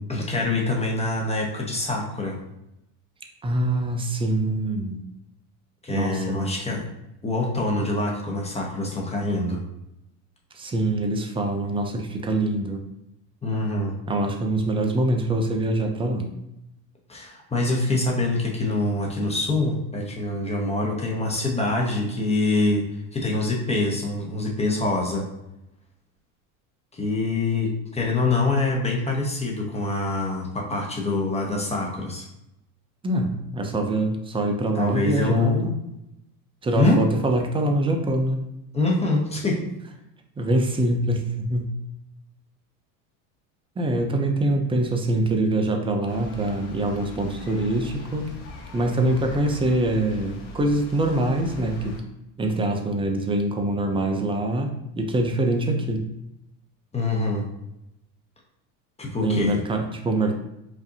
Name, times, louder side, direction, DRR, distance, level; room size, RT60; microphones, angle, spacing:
voice 1, 0.1-2.4 5.8-6.8 7.2-9.6 13.4-13.9 17.1-25.2 26.9-32.3 34.7-35.7 36.7-37.0 38.7-39.7 56.9-57.4 59.0-59.6, left 2 dB, 15° left, -1 dB, 0.9 m, -25 dB
voice 2, 3.4-5.0 5.9-6.5 10.5-12.8 14.1-16.3 33.0-35.8 36.6-38.4 40.4-41.7 43.8-48.2 48.7-52.0 52.4-56.0 59.2-60.3, right 1 dB, 15° right, 4 dB, 0.4 m, -24 dB
sound 1, 46.1-52.0, left 1 dB, 70° left, 1.1 m, -40 dB
5.0 x 2.6 x 2.7 m, 0.86 s
supercardioid pair, 110°, 43 cm